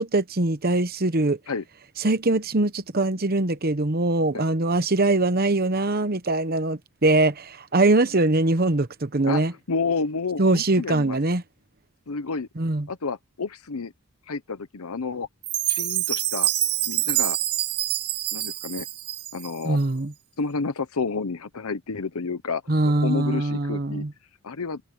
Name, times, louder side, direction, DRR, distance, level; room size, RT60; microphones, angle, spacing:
voice 1, 0.0-1.4 2.0-9.5 10.4-11.4 12.6-12.9 19.6-20.1 22.7-24.1, right 2 dB, 45° right, 1.0 m, -22 dB
voice 2, 9.2-11.2 12.1-12.5 12.9-13.9 14.3-15.3 15.7-16.5 16.9-17.4 18.3-18.9 19.3-19.8 20.4-24.1 24.4-24.8, left 4 dB, 80° left, 0.8 m, -30 dB
Chime, 15.4-19.6, right 15 dB, 90° right, 1.9 m, -26 dB
head